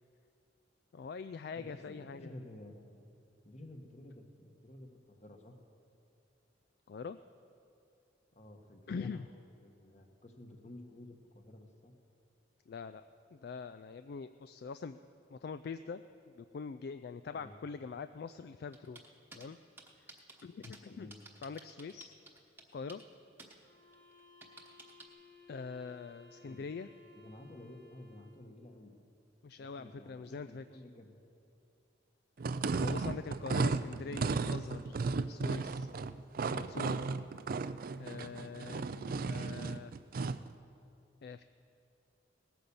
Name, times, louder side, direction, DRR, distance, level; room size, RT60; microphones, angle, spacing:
voice 1, 0.9-2.4 6.9-7.2 8.9-9.3 12.7-13.0 13.3-15.0 15.3-16.0 16.3-19.0 19.3-19.6 20.0-20.1 20.4-21.1 21.4-22.1 22.7-23.0 25.5-26.9 29.4-30.6 32.8-35.0 35.3-35.9 36.5-37.0 38.0-39.9 41.2-41.4, left 5 dB, 55° left, 10 dB, 0.3 m, -43 dB
voice 2, 1.5-2.9 3.4-5.5 8.3-9.3 9.6-11.9 17.3-17.5 20.9-21.2 26.4-26.7 27.1-29.0 29.6-31.2 38.3-38.5, left 1 dB, 35° left, 4 dB, 1.3 m, -52 dB
sound 1, 18.7-19.5 19.8-20.8 21.1-23.1 23.4-23.5 23.9-25.1, right 2 dB, 10° right, 1.1 m, -53 dB
sound 2, 23.5-28.5, left 3 dB, 90° left, 3.7 m, -59 dB
sound 3, 32.4-40.5, right 4 dB, 50° right, 0.4 m, -35 dB
18.0 x 9.2 x 7.0 m, 2.7 s
head